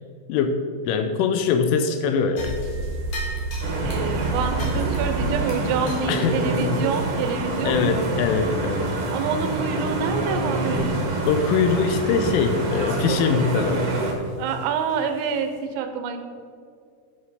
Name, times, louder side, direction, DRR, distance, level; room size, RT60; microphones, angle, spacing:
voice 1, 0.3-2.6 6.1-6.9 7.7-9.0 11.3-13.9, left 5 dB, 85° left, 8 dB, 2.9 m, -23 dB
sound 1, 2.4-9.0 9.3-9.4 9.9-10.2 10.6-11.0 11.3-11.4 12.0-12.1 14.5-14.6 15.2-15.3, right 3 dB, 50° left, 2.7 m, -31 dB
sound 2, 3.6-14.1, right 2 dB, 70° right, 2.0 m, -27 dB
voice 2, 3.8-8.1 9.1-10.9 14.4-16.2, right 6 dB, 85° right, 7 dB, 3.3 m, -27 dB
11.0 x 6.6 x 4.9 m, 2.3 s
omnidirectional pair, 6.0 m